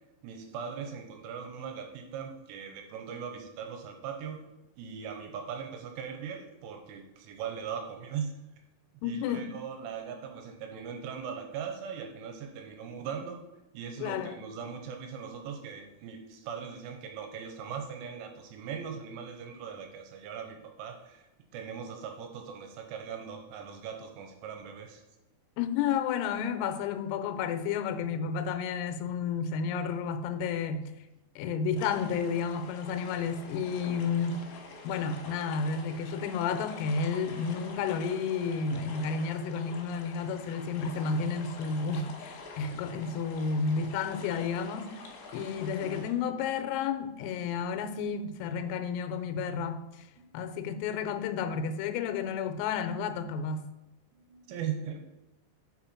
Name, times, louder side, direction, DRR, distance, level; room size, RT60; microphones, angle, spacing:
voice 1, 0.2-4.4 4.8-8.4 9.0-13.4 13.7-25.0 39.8-39.9 50.2-50.3 54.1-55.0, right 7 dB, 80° right, 3.0 m, -40 dB
voice 2, 9.0-9.5 14.0-14.4 25.6-30.9 31.4-34.4 34.8-44.9 45.3-49.8 50.3-53.6, left 6 dB, 85° left, 3.3 m, -31 dB
sound 1, 31.8-46.1, left 3 dB, 70° left, 2.7 m, -46 dB
7.3 x 5.6 x 4.2 m
omnidirectional pair, 6.0 m